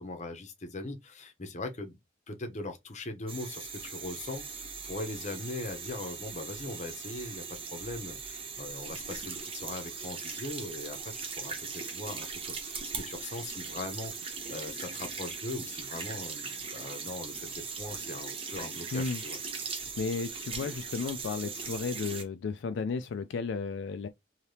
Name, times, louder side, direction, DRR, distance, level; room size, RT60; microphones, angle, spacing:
voice 1, 0.0-2.0 2.3-19.4, left 2 dB, 40° left, 0.7 m, -40 dB
sound 1, 3.3-22.2, right 5 dB, 30° right, 0.8 m, -40 dB
voice 2, 19.7-24.1, left 4 dB, 75° left, 0.4 m, -34 dB
3.3 x 2.8 x 2.7 m
head